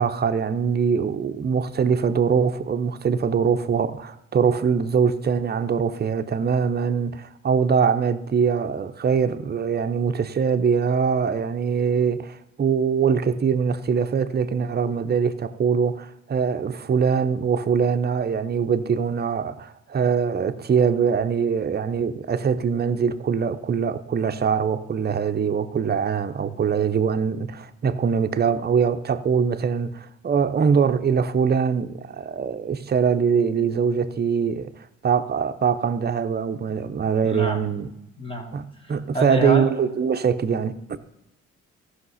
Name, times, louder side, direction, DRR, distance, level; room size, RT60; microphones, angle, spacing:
voice 1, 0.0-34.7 35.0-37.9 38.5-41.0, right 6 dB, 35° right, 0.7 m, -23 dB
voice 2, 37.2-37.6 38.2-39.7, right 1 dB, 20° left, 1.6 m, -28 dB
14.5 x 5.9 x 5.6 m
cardioid pair, 90°, 30 cm